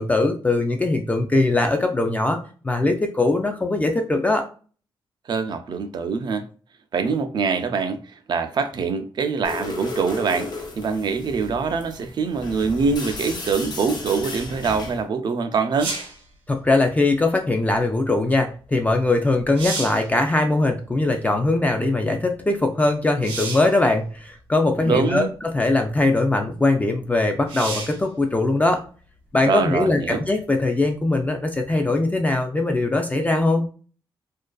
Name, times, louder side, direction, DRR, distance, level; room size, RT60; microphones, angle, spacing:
voice 1, 0.0-2.4 2.6-4.4 16.5-28.8 29.3-33.7, left 2 dB, 15° left, 0.3 m, -21 dB
voice 2, 5.3-6.5 6.9-8.0 8.3-10.5 10.8-15.9 24.8-25.3 29.5-30.2, right 5 dB, 55° right, 0.4 m, -24 dB
sound 1, 9.4-15.0, left 2 dB, 55° left, 0.6 m, -34 dB
sound 2, 15.8-16.2 18.9-19.0 19.4-20.1 23.2-23.8 24.8-24.9 27.5-28.0 31.6-31.7, right 3 dB, 85° right, 0.8 m, -31 dB
2.5 x 2.2 x 2.2 m
cardioid pair, 105°, 9 cm